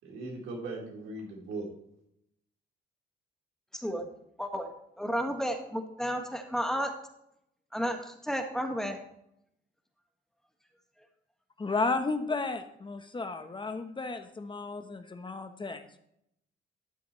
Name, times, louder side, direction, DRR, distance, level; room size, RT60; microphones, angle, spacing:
voice 1, 0.0-1.7, right 2 dB, 85° right, -2 dB, 3.9 m, -39 dB
voice 2, 3.7-4.1 4.4-4.7 5.0-6.9 7.7-9.0, equal, ahead, 4 dB, 1.7 m, -32 dB
voice 3, 11.6-16.0, left 3 dB, 25° left, 8 dB, 1.0 m, -33 dB
12.5 x 8.3 x 3.2 m, 0.76 s
cardioid pair, 90°, 20 cm